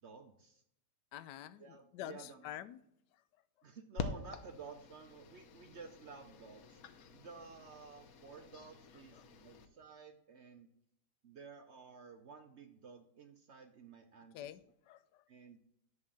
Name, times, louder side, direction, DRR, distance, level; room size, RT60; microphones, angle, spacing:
voice 1, 0.0-0.6 1.6-2.6 3.6-6.8 7.1-10.7 11.2-14.5 15.3-15.6, right 5 dB, 55° right, 0.8 m, -53 dB
voice 2, 1.1-2.8 9.1-9.3 14.3-15.2, left 12 dB, 85° left, 1.2 m, -48 dB
sound 1, 4.0-9.7, left 5 dB, 65° left, 1.2 m, -47 dB
10.5 x 3.6 x 7.4 m
omnidirectional pair, 1.8 m